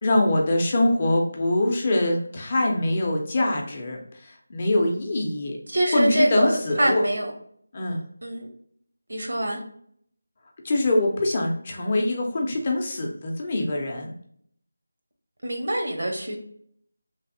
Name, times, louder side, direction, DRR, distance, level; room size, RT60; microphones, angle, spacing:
voice 1, 0.0-5.6 5.9-7.0 7.7-8.0 10.6-14.1, left 1 dB, 30° left, 0 dB, 0.6 m, -24 dB
voice 2, 5.7-7.3 8.2-8.5 9.1-9.6 15.4-16.4, right 1 dB, 75° right, 2 dB, 0.9 m, -24 dB
3.2 x 2.5 x 2.7 m, 0.64 s
figure-of-eight pair, 170°, 0 cm